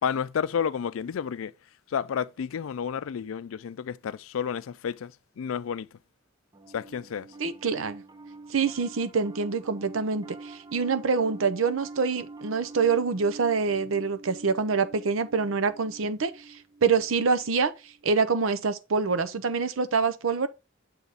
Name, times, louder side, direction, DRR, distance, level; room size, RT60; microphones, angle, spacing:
voice 1, 0.0-1.5 1.9-5.9 6.7-7.3, left 7 dB, 80° left, 0.4 m, -31 dB
Piano, 6.5-18.0, right 3 dB, 20° right, 0.5 m, -45 dB
voice 2, 7.4-8.0 8.5-20.5, right 5 dB, 85° right, 0.7 m, -26 dB
7.0 x 4.0 x 3.5 m
head